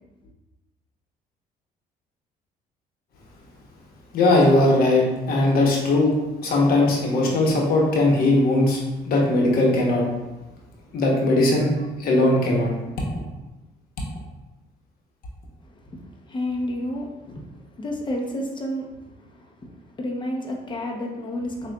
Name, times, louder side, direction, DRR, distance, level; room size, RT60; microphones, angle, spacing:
voice 1, 4.1-6.1 6.4-8.8 9.0-10.0 10.9-12.7, left 2 dB, 65° left, -2 dB, 1.1 m, -19 dB
voice 2, 15.7-21.7, left 1 dB, 30° left, 0 dB, 0.8 m, -31 dB
6.5 x 2.4 x 2.3 m, 1.1 s
cardioid pair, 110°, 17 cm